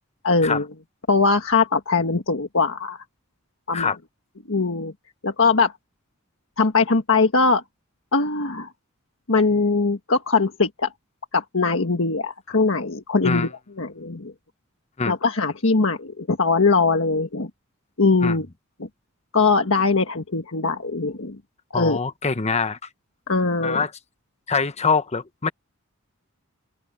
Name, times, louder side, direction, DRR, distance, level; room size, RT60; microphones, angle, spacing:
voice 1, 0.2-0.6 1.1-3.0 3.7-3.9 4.5-4.9 5.2-5.7 6.6-7.6 8.1-8.7 9.3-10.9 11.3-13.5 13.8-14.3 15.0-17.5 18.0-18.5 18.8-18.9 19.3-21.4 21.7-22.0 23.3-23.8, left 4 dB, 65° left, 1.5 m, -21 dB
voice 2, 21.7-22.9 23.6-23.9 24.5-25.5, left 5 dB, 30° left, 0.9 m, -24 dB
open air
head